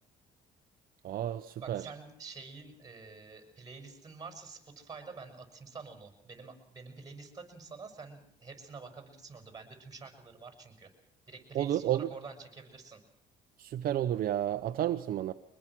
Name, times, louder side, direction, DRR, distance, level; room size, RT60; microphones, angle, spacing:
voice 1, 1.0-1.8 11.5-12.1 13.6-15.3, right 11 dB, 60° right, 8 dB, 0.9 m, -31 dB
voice 2, 1.6-10.9 11.3-13.0, right 4 dB, 20° right, 5 dB, 6.7 m, -48 dB
24.0 x 21.0 x 6.2 m, 0.75 s
cardioid pair, 110°, 17 cm